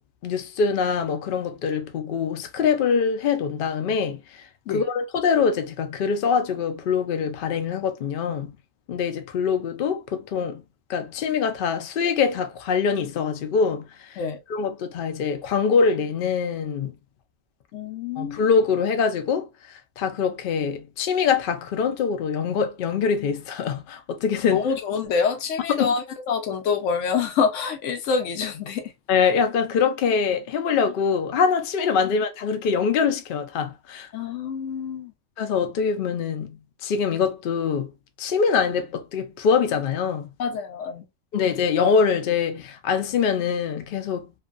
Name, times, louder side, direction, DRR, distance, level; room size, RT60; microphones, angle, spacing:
voice 1, 0.2-4.4 4.7-8.6 8.9-10.6 10.9-14.2 14.5-16.9 18.2-24.7 25.7-25.9 29.1-34.1 35.4-37.9 38.2-40.3 41.3-44.3, left 6 dB, 60° left, 0.6 m, -24 dB
voice 2, 17.7-18.4 24.5-28.8 34.1-35.1 40.4-41.0, left 6 dB, 75° left, 0.9 m, -26 dB
2.7 x 2.5 x 2.4 m
omnidirectional pair, 1.3 m